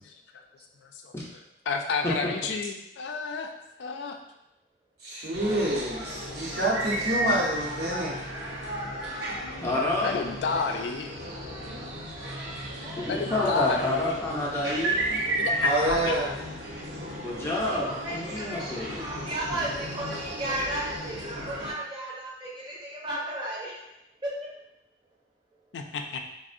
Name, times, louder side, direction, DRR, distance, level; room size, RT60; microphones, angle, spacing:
voice 1, 0.8-3.5 3.8-4.2 10.0-11.2 13.1-14.2 15.4-16.1 25.7-26.2, left 4 dB, 80° left, 3 dB, 0.3 m, -31 dB
voice 2, 5.0-8.2 15.6-16.3, right 1 dB, 65° right, -6 dB, 0.8 m, -27 dB
sound 1, 5.3-21.7, equal, 90° right, 0.7 m, -34 dB
voice 3, 9.6-10.2 13.0-15.2 17.2-19.0, left 2 dB, 15° left, -5 dB, 0.5 m, -28 dB
voice 4, 12.8-13.9 17.6-23.8 24.2-24.5, right 1 dB, 25° right, -5 dB, 0.7 m, -35 dB
3.5 x 2.0 x 2.5 m, 0.86 s
head